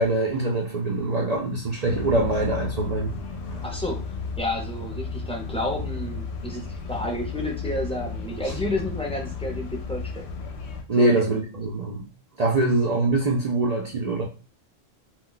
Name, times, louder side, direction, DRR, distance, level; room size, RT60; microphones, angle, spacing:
voice 1, 0.0-3.1 3.5-3.6 8.4-8.6 10.9-12.1 12.4-14.2, right 2 dB, 55° right, -1 dB, 0.4 m, -24 dB
sound 1, 1.9-10.8, left 4 dB, 65° left, 0.8 m, -33 dB
voice 2, 3.6-4.0 4.4-10.2 11.0-11.2, left 1 dB, 5° left, 0 dB, 0.5 m, -30 dB
2.4 x 2.3 x 3.8 m, 0.33 s
omnidirectional pair, 1.3 m